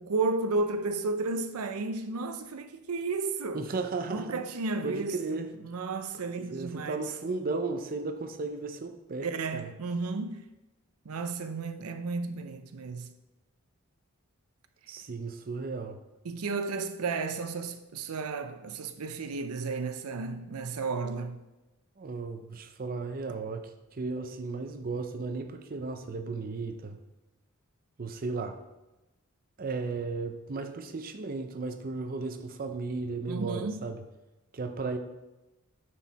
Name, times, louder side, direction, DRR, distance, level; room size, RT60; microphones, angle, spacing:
voice 1, 0.0-3.7 4.1-7.1 9.2-10.4 11.1-13.1 16.2-21.4 33.3-33.8, right 3 dB, 85° right, 0.6 m, -33 dB
voice 2, 3.5-4.4 4.8-5.5 6.5-9.7 14.9-16.0 22.0-27.0 28.0-28.6 29.6-34.0 34.5-35.0, right 3 dB, 40° right, 0.5 m, -35 dB
9.2 x 4.6 x 4.1 m
head